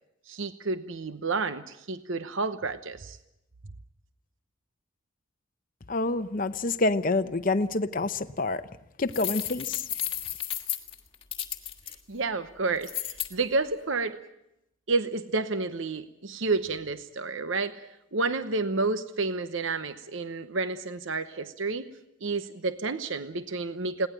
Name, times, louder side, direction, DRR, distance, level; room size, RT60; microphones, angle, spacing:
voice 1, 0.3-3.2 12.1-14.2 14.9-17.9 18.1-21.9 22.2-24.1, right 3 dB, 65° right, 0.9 m, -30 dB
voice 2, 5.9-8.6 9.0-9.8, left 2 dB, 40° left, 0.7 m, -27 dB
sound 1, 9.1-11.9 12.8-13.3, left 11 dB, 25° left, 1.6 m, -33 dB
21.5 x 18.0 x 8.9 m
head